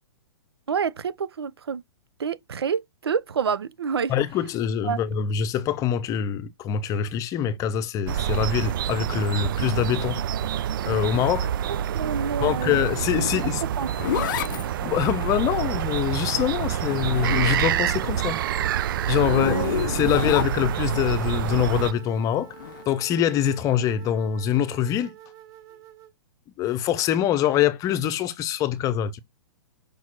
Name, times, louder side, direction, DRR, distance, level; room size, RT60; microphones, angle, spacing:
voice 1, 0.7-1.8 2.2-4.1 4.8-5.0 11.9-12.8 13.2-13.3 13.8-14.3 19.3-19.8 20.2-20.3, right 6 dB, 85° right, 0.8 m, -28 dB
voice 2, 4.1-10.2 10.8-11.5 12.4-13.6 14.8-18.4 19.1-22.5 22.9-25.1 26.6-29.2, left 10 dB, 25° left, 0.8 m, -24 dB
sound 1, 8.1-21.9, right 10 dB, 60° right, 0.4 m, -27 dB
Zipper (clothing), 13.4-17.9 18.2-20.9 22.5-22.8, left 13 dB, 55° left, 0.5 m, -31 dB
sound 2, 17.6-26.1, right 10 dB, 25° right, 1.6 m, -47 dB
5.3 x 4.6 x 6.0 m
hypercardioid pair, 135°, 13 cm